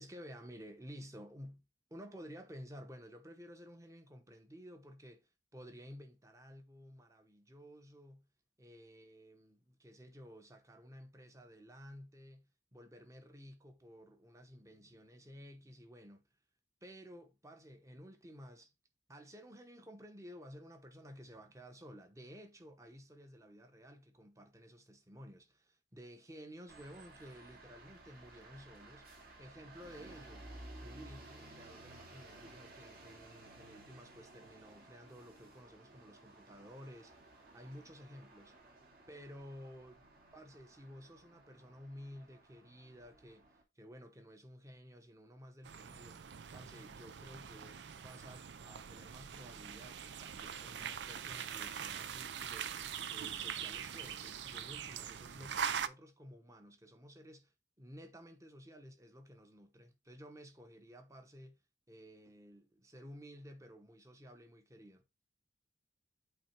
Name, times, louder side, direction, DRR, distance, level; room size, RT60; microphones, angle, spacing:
voice 1, 0.0-1.6 1.9-8.3 8.6-16.3 16.8-18.7 19.1-29.1 29.4-30.5 30.8-37.2 37.5-38.6 39.1-46.3 46.5-61.6 61.9-65.0, equal, 20° right, 1.0 m, -54 dB
sound 1, 26.7-43.6, right 2 dB, 55° right, 2.5 m, -56 dB
sound 2, 45.6-55.9, right 8 dB, 80° right, 0.5 m, -43 dB
8.3 x 3.3 x 4.4 m
head